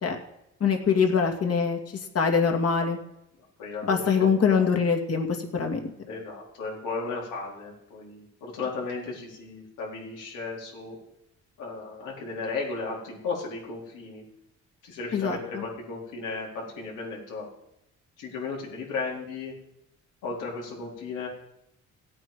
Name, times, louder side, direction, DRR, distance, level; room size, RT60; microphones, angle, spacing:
voice 1, 0.6-1.8 2.1-3.0 3.8-5.3 5.5-5.8 15.1-15.6, left 6 dB, 50° left, 4 dB, 2.4 m, -23 dB
voice 2, 3.4-4.7 6.1-11.0 11.6-14.2 14.8-17.5 18.2-19.5 20.2-21.3, left 4 dB, 90° left, -3 dB, 4.5 m, -35 dB
16.0 x 8.8 x 5.3 m, 0.82 s
cardioid pair, 90°, 30 cm